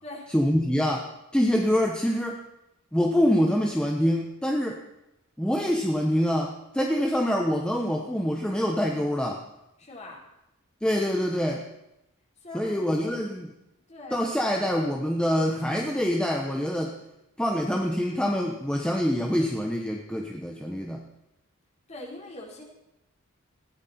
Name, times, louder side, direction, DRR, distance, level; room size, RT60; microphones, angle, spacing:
voice 1, 0.3-2.4 2.9-4.8 5.4-9.4 10.8-11.7 12.5-13.5 14.1-17.0 17.4-21.0, equal, 5° left, 1 dB, 1.0 m, -25 dB
voice 2, 9.8-10.2 12.4-13.1 13.9-14.6 21.9-22.6, left 1 dB, 30° left, -2 dB, 4.2 m, -42 dB
19.5 x 14.5 x 4.4 m, 0.89 s
head